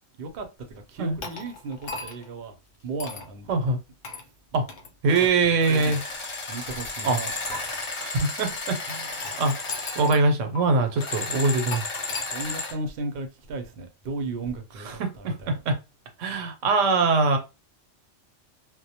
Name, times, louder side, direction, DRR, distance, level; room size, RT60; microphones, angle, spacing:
voice 1, 0.2-2.6 2.8-3.5 5.1-5.3 5.7-6.0 6.5-7.3 12.3-15.5, right 3 dB, 60° right, 0.7 m, -35 dB
sound 1, 1.2-2.4 3.0-3.3 4.0-4.3 4.7-4.9 5.6-6.7 7.5-7.6 8.9-10.3 10.6-10.7 11.7-12.3, left 3 dB, 70° left, 0.9 m, -38 dB
voice 2, 3.5-3.8 4.5-4.7 5.0-6.0 7.0-7.2 8.0-9.5 10.0-11.8 14.9-15.8 16.2-17.4, right 3 dB, 85° right, 0.9 m, -23 dB
sound 2, 5.1-5.3 5.6-10.1 10.9-12.8, left 3 dB, 50° left, 0.3 m, -33 dB
2.1 x 2.1 x 2.7 m
omnidirectional pair, 1.3 m